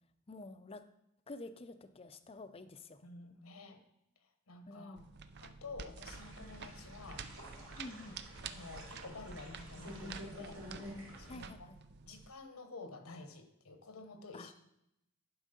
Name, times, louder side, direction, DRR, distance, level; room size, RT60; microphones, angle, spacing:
voice 1, 0.3-0.8 1.3-3.0 4.7-5.1 7.8-8.2 11.3-11.8 14.3-14.5, left 2 dB, 25° left, 10 dB, 0.5 m, -49 dB
voice 2, 3.0-3.8 4.2-5.0 5.4-7.2 8.4-10.6 11.2-11.7 12.1-14.6, left 3 dB, 85° left, 6 dB, 1.1 m, -50 dB
sound 1, 5.0-12.3, right 6 dB, 50° right, 0.5 m, -50 dB
sound 2, 6.0-11.4, equal, 75° right, 3.4 m, -49 dB
11.0 x 4.7 x 5.3 m, 0.83 s
head